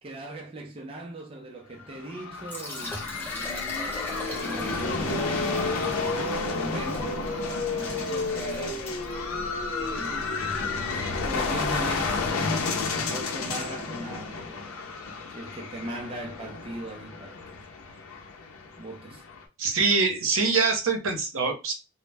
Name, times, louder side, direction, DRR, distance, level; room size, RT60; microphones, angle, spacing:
voice 1, 0.0-3.6 4.2-7.1 7.6-8.9 9.8-12.7 12.9-14.7 15.3-17.6 18.8-19.2, right 1 dB, 25° right, 0.4 m, -39 dB
sound 1, 1.8-19.4, left 4 dB, 85° left, 0.6 m, -32 dB
Liquid, 2.3-9.2, left 1 dB, 10° left, 0.8 m, -41 dB
sound 2, 3.1-13.2, left 2 dB, 50° left, 0.7 m, -34 dB
voice 2, 19.6-21.7, right 4 dB, 70° right, 0.7 m, -24 dB
2.1 x 2.0 x 3.3 m
head